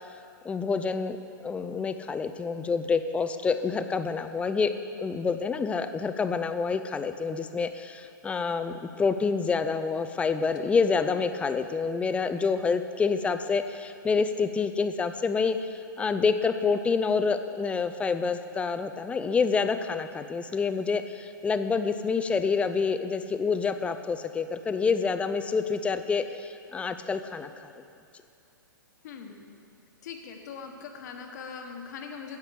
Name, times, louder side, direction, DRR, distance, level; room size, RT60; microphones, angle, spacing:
voice 1, 0.4-1.2 1.4-27.7, left 5 dB, 10° left, 10 dB, 0.5 m, -27 dB
voice 2, 29.0-29.5 30.0-32.4, left 6 dB, 55° left, 4 dB, 1.4 m, -41 dB
9.9 x 8.1 x 6.7 m, 2.5 s
hypercardioid pair, 115°, 11 cm